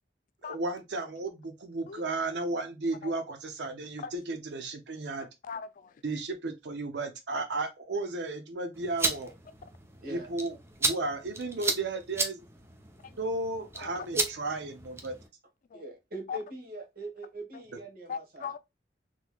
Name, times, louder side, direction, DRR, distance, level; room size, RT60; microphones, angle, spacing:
voice 1, 0.4-5.3 6.0-9.3 10.1-12.4 13.2-15.1, right 2 dB, 75° right, 0.6 m, -34 dB
voice 2, 5.2-5.9 13.0-13.2 13.8-14.1 15.7-15.8 16.3-16.4 18.1-18.6, left 6 dB, 50° left, 0.3 m, -39 dB
sound 1, 8.7-15.3, right 2 dB, 15° right, 0.6 m, -34 dB
voice 3, 15.7-18.5, right 1 dB, 55° right, 1.4 m, -41 dB
3.7 x 3.1 x 2.2 m
head